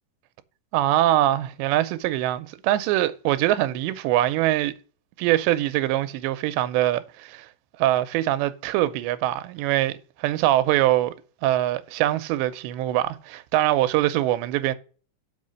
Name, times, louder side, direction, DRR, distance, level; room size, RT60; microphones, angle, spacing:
voice 1, 0.7-4.7 5.2-7.5 7.8-11.1 11.4-14.8, right 14 dB, 90° right, 2.9 m, -23 dB
6.4 x 5.5 x 6.4 m
omnidirectional pair, 5.0 m